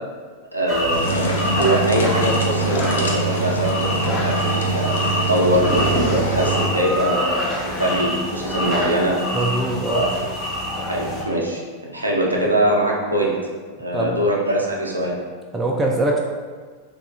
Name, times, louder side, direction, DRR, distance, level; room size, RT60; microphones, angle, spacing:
voice 1, 0.5-3.9 4.2-7.3 7.6-9.2 9.9-10.1 10.9-13.3 13.8-15.1, right 1 dB, 85° right, -2 dB, 0.5 m, -22 dB
sound 1, 0.7-11.2, left 1 dB, 20° left, 0.8 m, -25 dB
sound 2, 0.9-6.7, right 2 dB, 65° left, 0.4 m, -24 dB
voice 2, 9.3-10.1 13.9-14.2 15.5-16.2, right 2 dB, 15° right, -2 dB, 0.3 m, -22 dB
2.7 x 2.3 x 3.1 m, 1.5 s
figure-of-eight pair, 90°, 0 cm